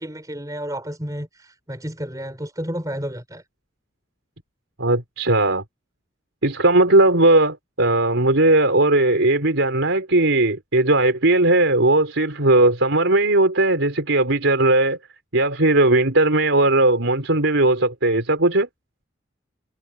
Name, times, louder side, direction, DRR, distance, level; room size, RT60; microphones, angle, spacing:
voice 1, 0.0-3.4, equal, 20° right, 4.6 m, -31 dB
voice 2, 4.8-5.6 6.4-15.0 15.3-18.7, right 2 dB, 90° right, 4.1 m, -18 dB
head